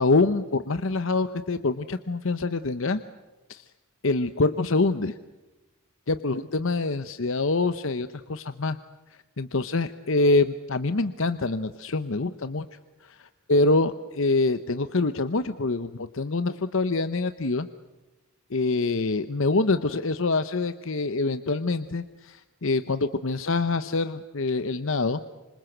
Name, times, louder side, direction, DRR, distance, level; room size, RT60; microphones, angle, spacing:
voice 1, 0.0-3.0 3.5-3.6 4.0-5.2 6.1-8.8 9.4-12.7 13.0-17.7 18.5-25.2, left 3 dB, 60° left, 11 dB, 0.9 m, -25 dB
26.5 x 26.5 x 8.0 m, 1.1 s
head